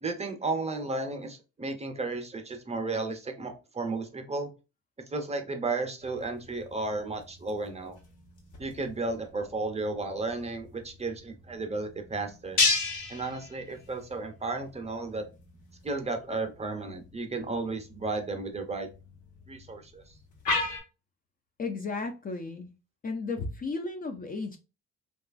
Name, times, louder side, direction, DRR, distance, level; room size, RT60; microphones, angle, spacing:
voice 1, 0.0-4.5 5.1-8.0 8.6-12.6 13.1-15.2 15.8-18.9 19.5-20.0, right 3 dB, 20° right, 5 dB, 0.6 m, -33 dB
sound 1, 6.0-20.8, left 3 dB, 80° left, 1.1 m, -36 dB
voice 2, 21.6-22.7 23.0-24.6, left 3 dB, 30° left, 5 dB, 0.4 m, -34 dB
2.9 x 2.3 x 2.4 m, 0.30 s
cardioid pair, 90°, 30 cm